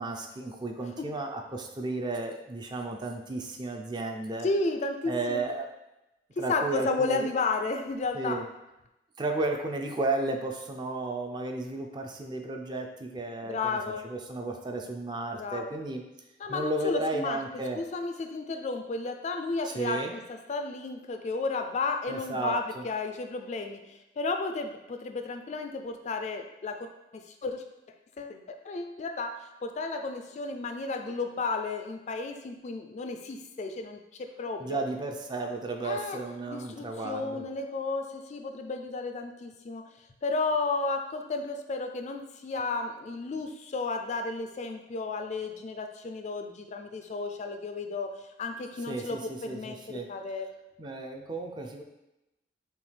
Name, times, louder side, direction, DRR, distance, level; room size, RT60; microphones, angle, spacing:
voice 1, 0.0-4.5 5.1-5.7 6.4-7.3 8.1-8.5 9.2-16.0 16.5-17.8 19.6-20.1 22.1-22.9 34.6-37.4 48.9-50.1 50.8-51.8, right 2 dB, 25° right, 3 dB, 0.4 m, -33 dB
voice 2, 4.4-5.4 6.4-8.4 13.4-14.0 15.3-15.7 16.4-17.4 17.8-20.2 20.5-23.8 24.2-27.6 28.2-29.3 29.6-34.0 34.4-34.8 35.8-36.2 36.5-39.8 40.2-48.1 48.4-50.5, left 3 dB, 40° left, 5 dB, 0.3 m, -33 dB
5.9 x 2.3 x 3.3 m, 0.94 s
head